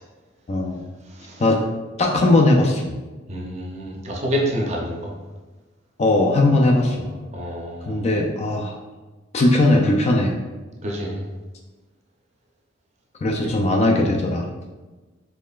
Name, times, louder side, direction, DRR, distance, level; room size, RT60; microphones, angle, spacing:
voice 1, 0.5-0.8 1.4-1.6 2.0-3.0 6.0-7.1 7.9-8.8 9.3-10.3 13.2-14.5, left 2 dB, 30° left, 1 dB, 0.3 m, -19 dB
voice 2, 3.3-5.1 7.3-8.0 10.8-11.2, equal, 35° right, -1 dB, 0.6 m, -27 dB
4.1 x 3.0 x 2.3 m, 1.2 s
head